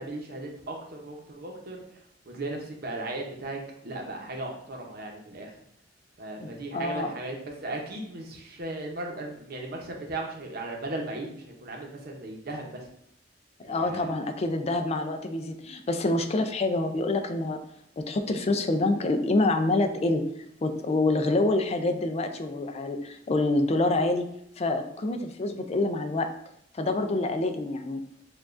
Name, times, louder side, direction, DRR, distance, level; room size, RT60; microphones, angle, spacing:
voice 1, 0.0-1.8 2.3-5.5 6.2-12.9 13.6-14.1, right 2 dB, 55° right, 1 dB, 0.8 m, -37 dB
voice 2, 6.7-7.1 13.6-17.6 18.0-20.3 20.6-24.3 24.6-26.3 26.7-28.1, left 2 dB, 35° left, 7 dB, 0.4 m, -26 dB
6.7 x 2.4 x 2.5 m, 0.74 s
head